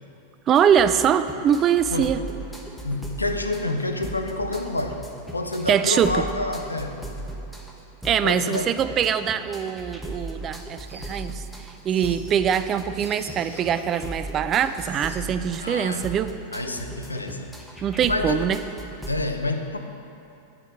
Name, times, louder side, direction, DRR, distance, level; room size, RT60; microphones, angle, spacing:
sound 1, 0.5-19.2, right 1 dB, ahead, 1.0 m, -38 dB
voice 1, 0.5-2.2 5.7-6.2 8.0-11.4 11.8-16.3 17.8-18.6, right 8 dB, 30° right, 12 dB, 0.4 m, -23 dB
voice 2, 1.9-2.2 2.8-5.1 5.3-7.0 8.2-8.8 15.6-16.2 16.5-17.5 18.1-18.6 19.1-19.8, left 2 dB, 80° left, 6 dB, 0.7 m, -28 dB
sound 2, 10.2-14.3 14.6-15.6, equal, 85° right, 2.3 m, -47 dB
8.5 x 5.9 x 7.5 m, 2.7 s
figure-of-eight pair, 90°, 0 cm